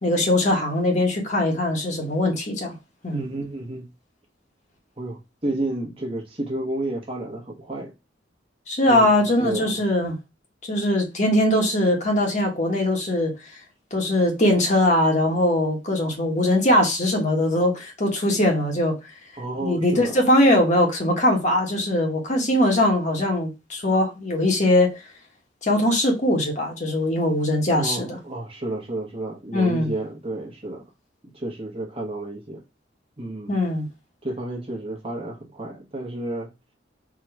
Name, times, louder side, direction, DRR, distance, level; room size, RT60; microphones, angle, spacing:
voice 1, 0.0-2.7 3.0-3.2 8.7-10.2 10.6-13.3 13.9-19.0 19.6-25.0 25.6-28.2 29.5-29.9 33.5-33.9, left 1 dB, 40° left, 1.4 m, -21 dB
voice 2, 3.1-3.9 5.0-7.9 8.9-9.8 19.4-20.2 27.7-30.8 31.2-32.6 33.2-33.5 34.2-36.5, right 1 dB, 30° right, 1.2 m, -31 dB
3.8 x 3.1 x 4.5 m
head